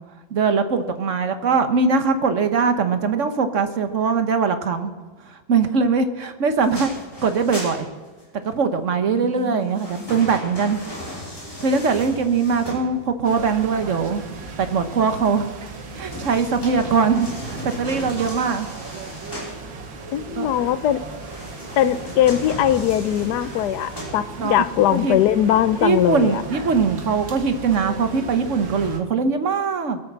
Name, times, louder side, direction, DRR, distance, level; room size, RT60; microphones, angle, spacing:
voice 1, 0.3-4.9 5.3-6.9 7.2-7.9 8.4-10.8 11.6-14.2 14.6-15.5 15.9-18.7 20.4-20.5 24.4-24.6 24.9-25.2 25.8-30.0, right 5 dB, 50° right, 8 dB, 1.2 m, -21 dB
sound 1, 6.6-8.5 9.3-13.3 15.8-19.6 21.1-24.6 25.1-25.2, equal, 10° left, 5.0 m, -36 dB
voice 2, 9.1-10.1 20.1-21.0 21.8-26.4, left 11 dB, 65° left, 13 dB, 1.2 m, -21 dB
sound 2, 13.2-29.0, right 3 dB, 80° right, 2.3 m, -36 dB
22.0 x 7.9 x 7.4 m, 1.3 s
omnidirectional pair, 2.0 m